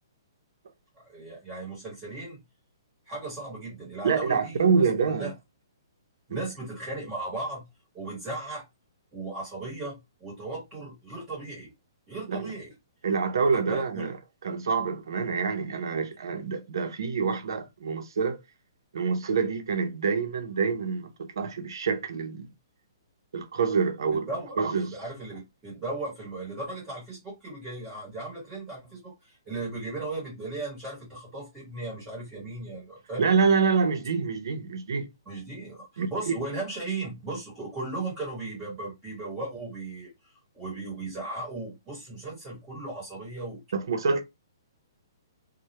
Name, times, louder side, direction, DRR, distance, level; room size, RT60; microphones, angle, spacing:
voice 1, 1.0-2.4 3.1-5.3 6.3-7.7 7.9-8.7 9.1-11.7 12.1-12.7 13.5-14.1 24.3-33.2 35.3-43.6, right 2 dB, 15° right, 1.0 m, -37 dB
voice 2, 4.0-5.3 6.3-6.4 12.3-12.5 13.0-14.2 14.4-18.4 18.9-22.5 23.3-24.3 24.6-24.9 33.2-35.1 36.0-36.3 43.7-44.2, right 5 dB, 70° right, 0.6 m, -26 dB
2.2 x 2.1 x 2.8 m
hypercardioid pair, 170°, 2 cm